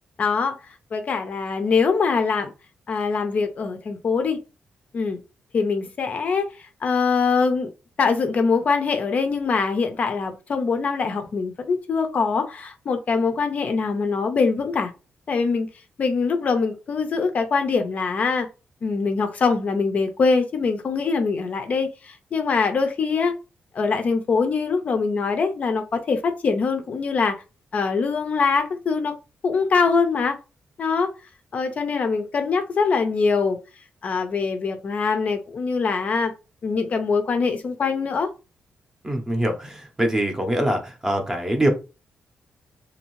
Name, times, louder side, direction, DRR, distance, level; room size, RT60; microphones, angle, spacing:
voice 1, 0.2-0.6 0.9-2.5 2.9-4.4 4.9-5.2 5.5-7.7 8.0-14.9 15.3-15.7 16.0-18.5 18.8-23.3 23.7-27.4 27.7-29.2 29.4-30.4 30.8-31.1 31.5-33.6 34.0-36.3 36.6-38.3, left 4 dB, 45° left, 0.4 m, -23 dB
voice 2, 39.0-41.7, right 1 dB, 15° right, 0.6 m, -23 dB
2.6 x 2.5 x 3.0 m
wide cardioid pair, 145°, 4 cm